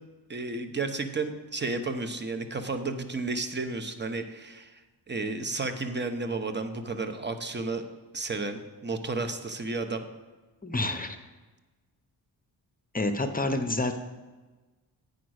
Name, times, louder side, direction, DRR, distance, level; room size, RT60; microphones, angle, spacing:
voice 1, 0.3-4.8 5.1-7.8 8.1-10.0, right 3 dB, 25° right, 8 dB, 0.8 m, -32 dB
voice 2, 10.6-11.2 12.9-14.0, left 2 dB, 20° left, 7 dB, 0.7 m, -28 dB
9.1 x 5.1 x 6.4 m, 1.2 s
cardioid pair, 80°, 44 cm